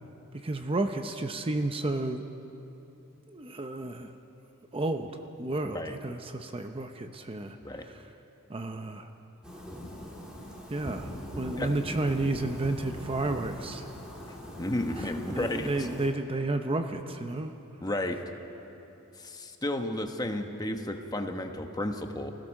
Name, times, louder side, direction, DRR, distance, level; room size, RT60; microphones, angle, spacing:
voice 1, 0.4-2.2 3.3-4.1 4.7-5.1 5.4-7.6 8.5-9.1 10.7-13.9 15.0-17.5, right 2 dB, 25° right, 6 dB, 0.7 m, -31 dB
voice 2, 5.6-5.9 7.6-7.8 11.6-11.7 14.6-15.9 17.8-18.2 19.2-22.3, left 1 dB, 20° left, 5 dB, 1.1 m, -32 dB
sound 1, 9.4-16.1, equal, 5° right, 2.6 m, -41 dB
26.0 x 16.0 x 6.4 m, 3.0 s
head